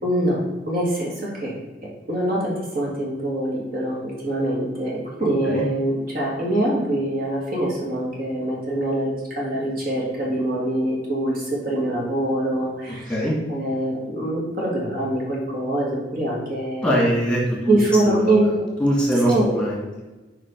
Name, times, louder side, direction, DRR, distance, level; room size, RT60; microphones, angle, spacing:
voice 1, 0.0-13.2 13.5-17.1 17.7-18.5 19.3-19.6, right 1 dB, 55° right, -4 dB, 2.3 m, -24 dB
voice 2, 16.8-17.8 18.1-18.5 18.8-20.0, equal, 5° left, -3 dB, 1.8 m, -22 dB
5.7 x 5.0 x 5.2 m, 1.1 s
head